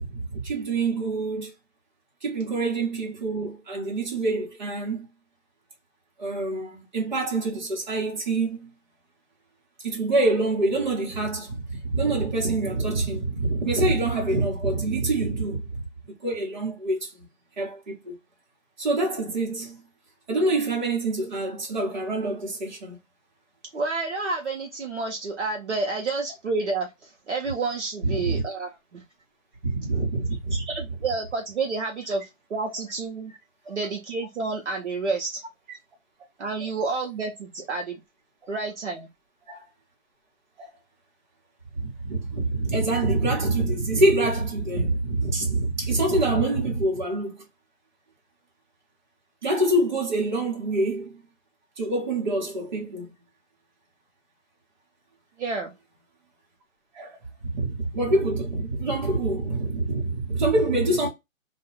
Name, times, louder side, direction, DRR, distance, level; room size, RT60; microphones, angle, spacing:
voice 1, 0.0-1.5 2.2-5.1 6.2-8.7 9.8-15.8 16.1-17.3 17.6-18.2 18.8-19.9 20.3-23.0 28.0-28.4 29.6-30.6 33.7-33.8 35.7-35.8 39.5-39.6 40.6-40.7 41.7-47.5 49.4-51.2 51.8-53.1 56.9-61.1, right 2 dB, 35° right, 0.9 m, -26 dB
voice 2, 23.7-29.0 30.5-33.3 33.7-35.4 36.4-38.0 38.5-39.1 55.4-55.7, right 3 dB, 60° right, 0.7 m, -30 dB
2.3 x 2.2 x 2.9 m
hypercardioid pair, 165°, 41 cm